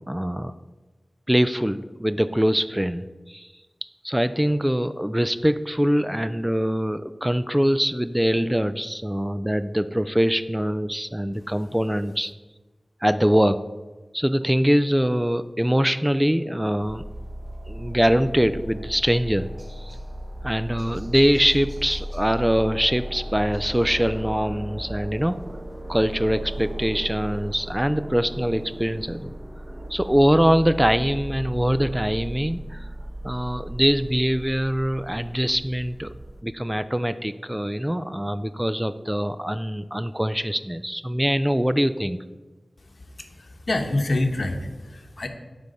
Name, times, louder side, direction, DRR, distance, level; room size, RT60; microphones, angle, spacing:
voice 1, 0.1-0.5 1.3-3.5 4.0-12.3 13.0-13.7 14.1-17.0 17.7-19.5 19.8-20.0 20.4-25.4 25.9-29.3 29.9-32.9 33.2-36.1 36.4-42.2, equal, 10° right, 12 dB, 0.3 m, -23 dB
sound 1, 16.8-36.4, right 1 dB, 40° right, 1.0 m, -36 dB
voice 2, 42.8-45.3, left 2 dB, 60° left, 5 dB, 0.9 m, -27 dB
9.0 x 3.6 x 6.6 m, 1.2 s
wide cardioid pair, 55°, 0 cm